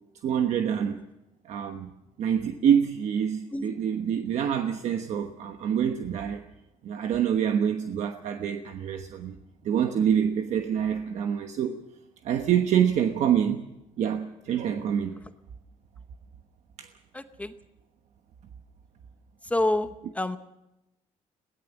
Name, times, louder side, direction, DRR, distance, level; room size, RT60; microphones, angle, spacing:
voice 1, 0.2-1.0 1.4-1.9 2.2-6.4 6.8-9.4 9.6-11.7 12.2-13.6 14.0-15.2 16.8-16.9, right 8 dB, 65° right, 6 dB, 1.2 m, -26 dB
voice 2, 17.1-17.5 19.5-20.4, left 1 dB, 10° left, 9 dB, 0.8 m, -28 dB
22.5 x 17.5 x 7.2 m, 0.93 s
cardioid pair, 140°, 13 cm